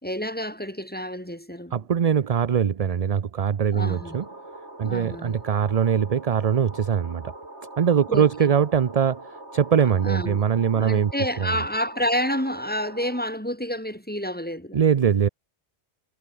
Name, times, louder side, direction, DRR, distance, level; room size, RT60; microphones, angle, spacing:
voice 1, 0.0-1.8 3.7-4.3 4.8-5.4 8.1-8.5 9.8-10.4 10.7-14.8, equal, 10° left, 4.9 m, -29 dB
voice 2, 1.7-4.3 4.8-7.3 7.8-11.1 11.4-11.5 14.7-15.3, right 7 dB, 40° right, 0.6 m, -22 dB
sound 1, 3.8-13.2, right 1 dB, 90° right, 6.8 m, -43 dB
omnidirectional pair, 1.1 m